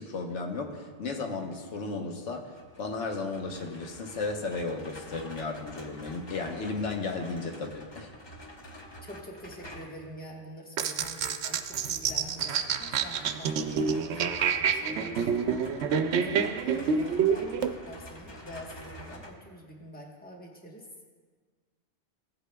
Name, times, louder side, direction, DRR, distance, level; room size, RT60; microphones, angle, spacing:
voice 1, 0.0-2.5 2.8-8.1, left 3 dB, 90° left, 3 dB, 1.2 m, -34 dB
sound 1, 2.5-10.1 11.8-19.3, equal, 25° left, 0.8 m, -47 dB
voice 2, 9.0-21.1, equal, 10° left, -1 dB, 1.1 m, -46 dB
sound 2, 10.8-17.7, right 6 dB, 80° right, 0.9 m, -28 dB
16.5 x 8.3 x 2.2 m, 1.5 s
omnidirectional pair, 1.2 m